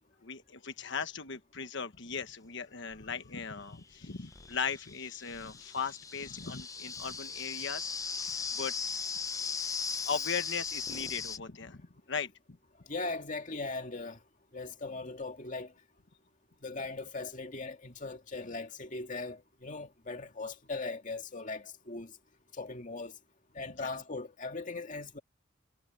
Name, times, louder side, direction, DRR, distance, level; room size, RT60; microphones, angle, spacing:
voice 1, 0.2-8.7 10.1-11.8 12.1-12.3 23.6-23.7, left 6 dB, 60° left, 1.2 m, -38 dB
sound 1, 2.9-3.0 3.9-11.4, left 5 dB, 15° left, 0.6 m, -38 dB
voice 2, 12.9-14.2 14.5-15.7 16.6-22.1 22.6-23.1 23.5-25.2, left 3 dB, 40° left, 2.3 m, -39 dB
head